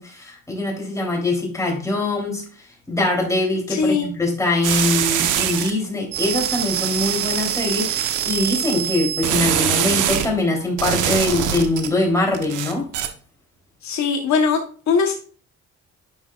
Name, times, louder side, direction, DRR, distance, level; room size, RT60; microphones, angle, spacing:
voice 1, 0.0-2.4 2.9-12.9, left 2 dB, 10° left, -2 dB, 3.1 m, -23 dB
voice 2, 3.7-4.1 13.8-14.6 14.9-15.1, left 5 dB, 65° left, 3 dB, 1.1 m, -20 dB
sound 1, 4.6-5.7 6.1-10.3 10.8-11.9 12.3-13.1, right 9 dB, 85° right, 0.9 m, -23 dB
9.3 x 5.6 x 2.4 m, 0.41 s
cardioid pair, 90°, 30 cm